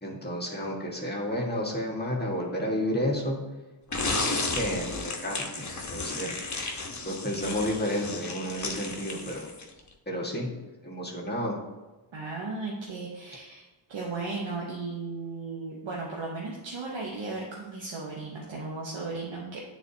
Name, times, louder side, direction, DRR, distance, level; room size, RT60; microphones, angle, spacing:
voice 1, 0.0-3.4 4.1-9.5 10.1-10.6 10.8-11.6, equal, 20° left, -3 dB, 1.7 m, -32 dB
sound 1, 3.9-9.8, left 3 dB, 35° left, 1.2 m, -33 dB
voice 2, 12.1-13.6 13.9-19.6, right 3 dB, 65° right, -3 dB, 1.2 m, -35 dB
9.1 x 4.0 x 2.8 m, 1.2 s
cardioid pair, 55°, 49 cm